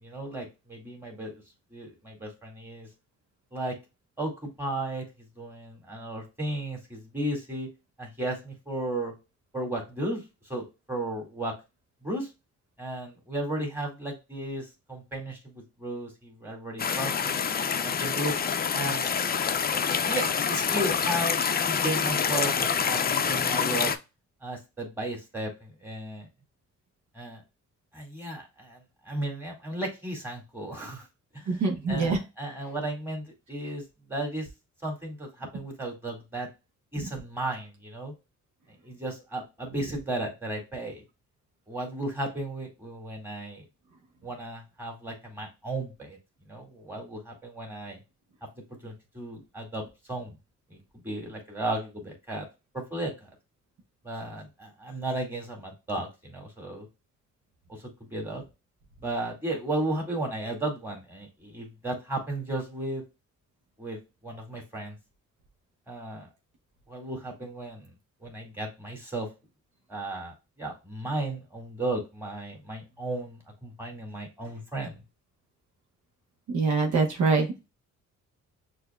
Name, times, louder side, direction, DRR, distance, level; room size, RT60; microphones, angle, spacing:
voice 1, 0.0-1.4 1.7-2.9 3.5-3.8 4.2-5.1 5.4-7.7 8.0-9.1 9.5-10.2 10.5-11.5 12.0-12.3 12.8-17.4 17.8-18.4 18.7-19.1 20.1-21.4 21.7-23.9 24.4-26.3 27.1-27.4 27.9-28.8 29.1-31.1 31.3-33.8 34.1-34.5 34.8-36.5 36.9-38.1 38.8-41.0 41.7-43.6 44.2-46.2 46.5-48.0 48.8-49.8 50.1-50.3 50.7-50.8 51.0-52.5 52.7-53.1 54.0-56.9 58.0-58.4 59.0-63.0 63.8-65.0 65.9-66.3 66.9-67.9 68.2-69.3 69.9-74.9, right 1 dB, 5° right, -1 dB, 2.1 m, -34 dB
sound 1, 16.8-24.0, left 6 dB, 30° left, 0.5 m, -26 dB
voice 2, 31.5-32.2 76.5-77.6, right 4 dB, 70° right, 2 dB, 1.1 m, -24 dB
6.0 x 2.7 x 2.2 m, 0.26 s
cardioid pair, 90°, 30 cm